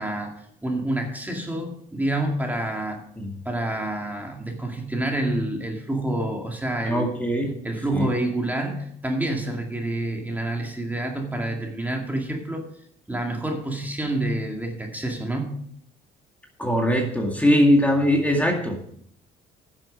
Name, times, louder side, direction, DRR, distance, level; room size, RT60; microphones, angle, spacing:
voice 1, 0.0-3.0 3.5-7.1 7.6-12.6 13.1-15.5, right 1 dB, 10° right, 2 dB, 2.1 m, -28 dB
voice 2, 6.8-7.5 7.9-8.1 16.6-18.9, equal, 10° left, 1 dB, 2.0 m, -21 dB
10.5 x 7.6 x 6.3 m, 0.67 s
cardioid pair, 110°, 17 cm